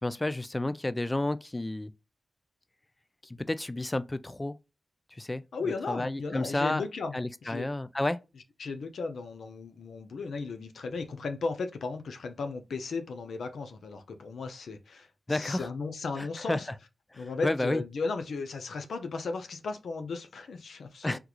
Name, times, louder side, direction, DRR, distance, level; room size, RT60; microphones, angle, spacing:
voice 1, 0.0-1.9 3.2-4.6 5.1-6.8 7.1-8.2 15.3-15.7 16.2-16.6 17.1-17.8 21.0-21.2, left 2 dB, 20° left, 0.3 m, -31 dB
voice 2, 5.5-7.7 8.6-16.7 17.2-21.2, left 4 dB, 90° left, 0.5 m, -36 dB
3.6 x 2.3 x 2.9 m
cardioid pair, 75°, 0 cm